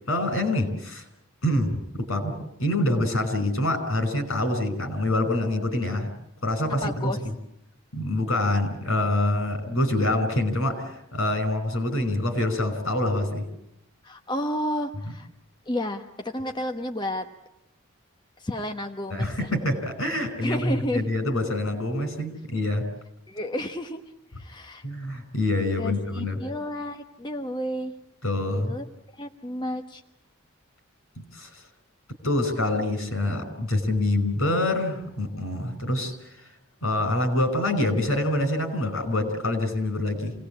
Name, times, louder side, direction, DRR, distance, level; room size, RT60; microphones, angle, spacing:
voice 1, 0.1-1.0 1.4-1.7 2.0-6.1 6.4-7.1 7.9-13.5 19.1-22.8 24.8-26.4 28.2-28.7 31.2-31.6 32.2-36.1 36.8-40.3, left 1 dB, 80° left, 7 dB, 5.5 m, -26 dB
voice 2, 6.8-7.2 14.0-15.3 15.7-17.3 18.4-19.5 20.4-21.1 23.3-24.0 24.4-24.8 25.8-27.9 28.5-28.8 29.1-30.0, left 1 dB, 20° left, 4 dB, 1.1 m, -31 dB
27.0 x 18.5 x 8.6 m, 0.82 s
head